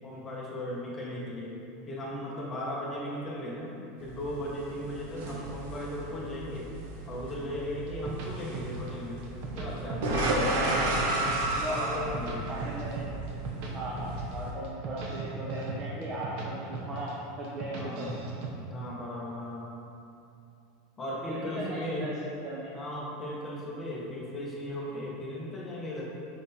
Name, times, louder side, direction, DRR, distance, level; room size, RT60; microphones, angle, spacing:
voice 1, 0.0-1.6 1.9-3.7 4.0-6.7 7.1-9.2 9.5-10.2 11.6-12.4 17.8-18.2 18.7-19.7 21.0-22.1 22.7-26.0, left 1 dB, 15° left, -5 dB, 1.0 m, -37 dB
sound 1, 4.0-14.5, right 1 dB, 65° right, 1.1 m, -33 dB
sound 2, 7.5-8.9 9.2-10.4 10.6-11.6 11.9-13.7 14.0-14.3 14.6-16.5 16.7-17.1 17.4-18.5, right 3 dB, 45° right, 0.8 m, -37 dB
voice 2, 11.6-12.0 12.5-13.1 13.7-17.1 17.4-18.1 21.0-22.1 22.4-22.7, right 1 dB, 20° right, -5 dB, 0.6 m, -37 dB
6.0 x 5.5 x 4.1 m, 2.7 s
supercardioid pair, 175°, 0 cm